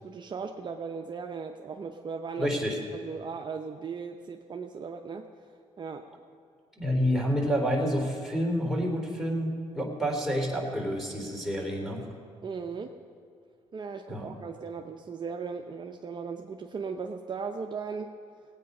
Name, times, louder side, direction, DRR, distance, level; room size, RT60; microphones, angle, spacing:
voice 1, 0.0-2.6 2.9-5.3 5.8-6.1 12.4-13.0 13.7-18.2, right 5 dB, 40° right, 4 dB, 0.7 m, -37 dB
voice 2, 2.4-2.8 6.8-12.0 14.1-14.3, equal, ahead, -1 dB, 3.4 m, -28 dB
18.5 x 8.7 x 5.4 m, 2.2 s
cardioid pair, 80°, 12 cm